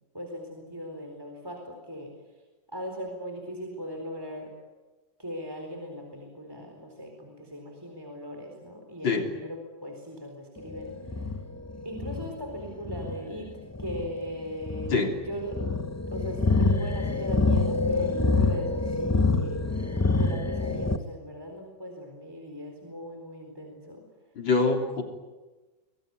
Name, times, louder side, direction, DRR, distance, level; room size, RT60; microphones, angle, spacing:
voice 1, 0.1-2.1 2.7-4.5 5.2-11.0 11.8-13.5 13.8-15.0 15.2-15.8 16.1-19.7 20.2-24.0, equal, 10° right, 3 dB, 4.2 m, -38 dB
sound 1, 10.6-21.0, left 3 dB, 15° left, 0.7 m, -27 dB
voice 2, 24.4-25.0, left 4 dB, 75° left, 3 dB, 4.1 m, -24 dB
26.0 x 20.5 x 9.6 m, 1.2 s
omnidirectional pair, 2.1 m